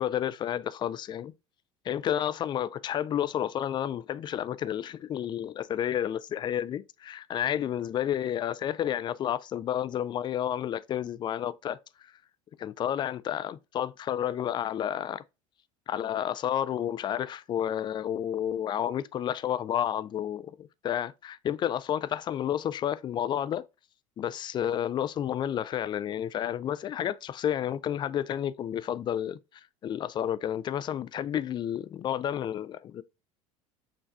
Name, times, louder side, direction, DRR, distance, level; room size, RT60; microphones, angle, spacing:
voice 1, 0.0-1.3 1.8-12.1 12.6-15.2 15.9-23.7 24.2-29.4 29.8-33.0, left 10 dB, 25° left, 0.4 m, -31 dB
6.4 x 3.3 x 2.2 m
figure-of-eight pair, 70°, 18 cm